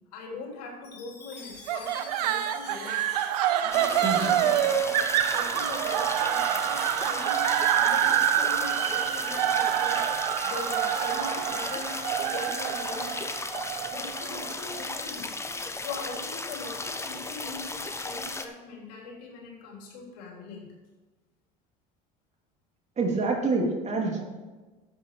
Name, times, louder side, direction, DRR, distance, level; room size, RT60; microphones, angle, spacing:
voice 1, 0.1-5.0 5.3-7.5 7.8-10.1 10.4-13.3 13.9-15.4 15.7-20.7, left 3 dB, 80° left, -1 dB, 3.5 m, -41 dB
Chime, 0.8-5.0, left 4 dB, 55° left, 3.4 m, -48 dB
sound 1, 1.7-14.8, right 11 dB, 85° right, 0.8 m, -27 dB
sound 2, 3.7-18.4, left 2 dB, 15° left, 1.1 m, -35 dB
voice 2, 4.0-4.4 23.0-24.2, right 3 dB, 35° right, 1 dB, 3.0 m, -27 dB
11.5 x 8.4 x 4.8 m, 1.2 s
hypercardioid pair, 85°, 20 cm